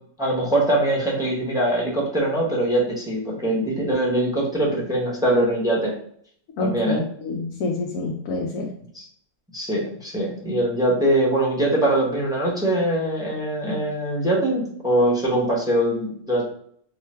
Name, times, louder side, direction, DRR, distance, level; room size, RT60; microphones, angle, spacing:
voice 1, 0.2-5.9 6.6-7.0 8.9-9.0 9.5-16.4, right 1 dB, 5° right, -5 dB, 0.8 m, -22 dB
voice 2, 6.6-8.7, left 2 dB, 75° left, -1 dB, 1.1 m, -27 dB
2.8 x 2.5 x 4.2 m, 0.63 s
omnidirectional pair, 1.7 m